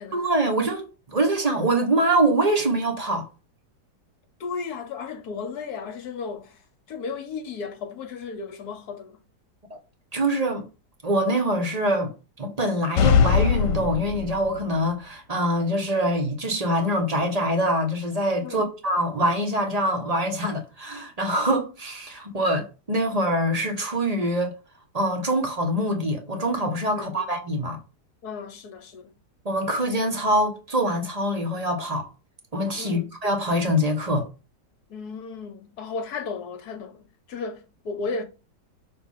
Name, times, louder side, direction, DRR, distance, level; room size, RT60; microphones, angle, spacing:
voice 1, 0.1-3.3 9.7-9.8 10.1-10.7 11.0-12.1 12.4-24.5 24.9-27.8 29.4-32.1 32.5-34.3, right 1 dB, 25° right, 1.1 m, -24 dB
voice 2, 4.4-6.6 6.9-9.2 18.4-18.7 26.9-27.3 28.2-29.1 32.8-33.1 34.9-38.2, left 4 dB, 65° left, 1.4 m, -34 dB
sound 1, 13.0-14.6, left 6 dB, 85° left, 1.3 m, -20 dB
6.2 x 3.1 x 5.6 m
omnidirectional pair, 1.9 m